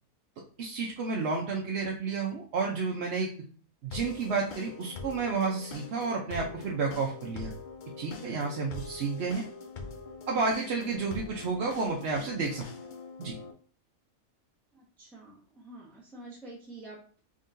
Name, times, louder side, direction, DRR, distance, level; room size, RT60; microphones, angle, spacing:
voice 1, 0.6-3.3 3.8-7.5 8.0-9.4 10.3-12.6 13.2-13.3, right 4 dB, 60° right, -1 dB, 0.8 m, -31 dB
sound 1, 3.9-13.5, left 4 dB, 75° left, 0.4 m, -43 dB
voice 2, 14.7-17.2, right 2 dB, ahead, -5 dB, 0.9 m, -48 dB
3.9 x 3.6 x 2.5 m, 0.43 s
omnidirectional pair, 1.5 m